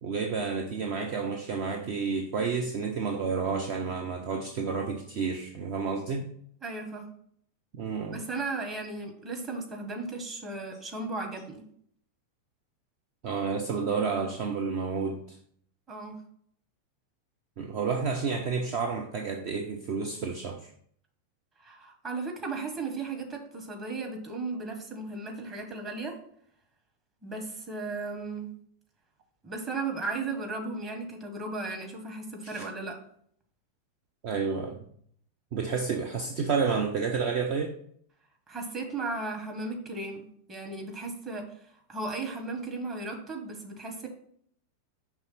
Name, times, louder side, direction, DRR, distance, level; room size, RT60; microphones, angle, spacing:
voice 1, 0.0-6.3 7.7-8.2 13.2-15.4 17.6-20.7 32.5-32.7 34.2-34.9 35.5-37.7, right 5 dB, 45° right, 3 dB, 0.6 m, -30 dB
voice 2, 6.6-7.1 8.1-11.6 15.9-16.2 21.6-26.2 27.2-28.5 29.4-33.0 38.5-41.4 41.9-44.1, right 3 dB, 25° right, 2 dB, 1.5 m, -35 dB
5.6 x 3.4 x 5.8 m, 0.64 s
figure-of-eight pair, 90°, 0 cm